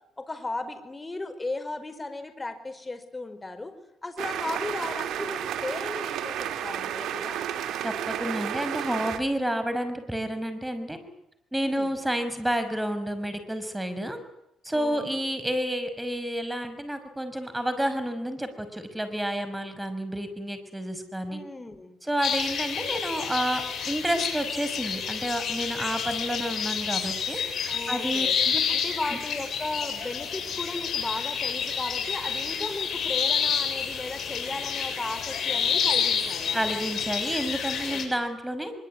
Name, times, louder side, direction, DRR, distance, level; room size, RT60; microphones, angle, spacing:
voice 1, 0.2-3.7 4.0-7.4 11.6-11.9 14.7-15.3 21.3-22.0 27.7-28.4 28.7-36.8 37.9-38.0, left 2 dB, 20° left, 9 dB, 5.1 m, -36 dB
sound 1, 4.2-9.2, right 10 dB, 75° right, 2.7 m, -32 dB
voice 2, 7.8-11.0 11.5-14.2 14.6-21.4 22.0-28.6 29.1-29.2 36.5-38.7, right 1 dB, 5° right, 9 dB, 5.8 m, -30 dB
sound 2, 22.2-38.0, left 7 dB, 60° left, 7.6 m, -29 dB
24.0 x 23.5 x 9.8 m, 0.81 s
cardioid pair, 90°, 0 cm